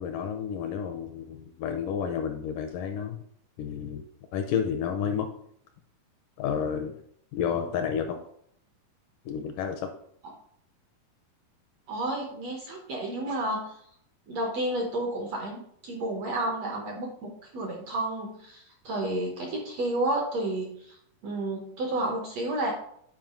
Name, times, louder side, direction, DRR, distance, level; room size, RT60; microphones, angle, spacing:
voice 1, 0.0-3.2 3.6-4.0 4.3-5.3 6.4-6.9 7.3-8.2 9.3-9.9, left 7 dB, 80° left, 6 dB, 1.9 m, -30 dB
voice 2, 11.9-13.7 14.3-21.0 21.2-22.7, right 1 dB, 65° right, 1 dB, 1.6 m, -31 dB
9.3 x 4.7 x 3.7 m, 0.67 s
omnidirectional pair, 4.4 m